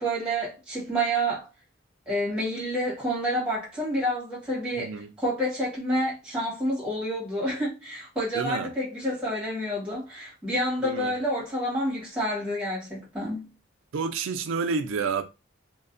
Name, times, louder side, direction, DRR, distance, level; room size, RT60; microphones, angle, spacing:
voice 1, 0.0-1.5 2.1-13.5, equal, 5° right, 1.1 m, -29 dB
voice 2, 4.7-5.1 8.3-8.7 10.8-11.1 13.9-15.2, right 5 dB, 75° right, 0.4 m, -29 dB
2.4 x 2.2 x 2.5 m
head